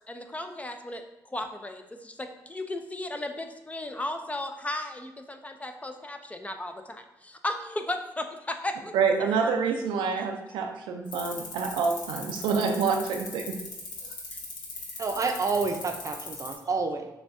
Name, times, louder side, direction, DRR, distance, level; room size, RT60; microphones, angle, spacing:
voice 1, 0.1-1.0 1.3-8.9 9.4-9.5 10.2-10.3 14.3-14.4, left 1 dB, 15° left, 6 dB, 0.4 m, -35 dB
voice 2, 8.9-13.6, right 5 dB, 90° right, 3 dB, 0.4 m, -27 dB
sound 1, 11.0-16.5, left 4 dB, 75° left, 0.9 m, -39 dB
voice 3, 15.0-17.1, right 4 dB, 45° right, 5 dB, 0.6 m, -29 dB
5.9 x 2.3 x 2.5 m, 0.92 s
supercardioid pair, 60°, 8 cm